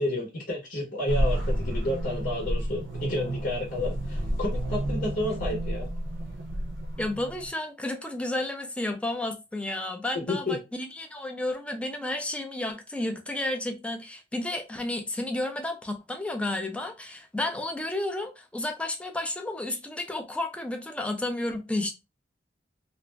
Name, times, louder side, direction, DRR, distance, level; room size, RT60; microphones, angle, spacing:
voice 1, 0.0-5.9 10.3-10.6, left 1 dB, 50° left, 0.8 m, -31 dB
sound 1, 1.1-7.5, right 1 dB, 75° right, 0.7 m, -30 dB
voice 2, 7.0-21.9, left 1 dB, 5° left, 0.4 m, -32 dB
2.5 x 2.0 x 3.1 m
head